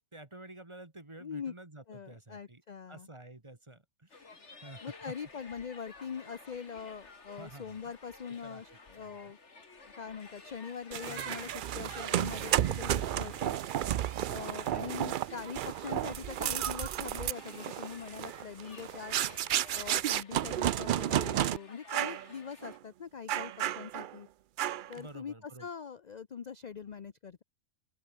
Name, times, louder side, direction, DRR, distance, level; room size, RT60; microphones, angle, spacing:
voice 1, 0.0-2.6 2.9-5.1 7.4-7.8 8.3-9.3 11.1-11.6 11.8-12.1 25.0-25.7, right 2 dB, 20° right, 1.9 m, -51 dB
voice 2, 1.2-1.5 1.9-3.1 4.8-9.4 9.8-13.6 14.3-19.3 19.7-24.3 24.9-27.4, left 6 dB, 40° left, 0.7 m, -43 dB
sound 1, 4.1-22.8, left 3 dB, 60° left, 2.9 m, -54 dB
sound 2, 10.9-21.6 21.9-22.2 22.6-22.8 23.3-24.2 24.6-25.0, right 11 dB, 70° right, 0.4 m, -32 dB
open air
omnidirectional pair, 1.4 m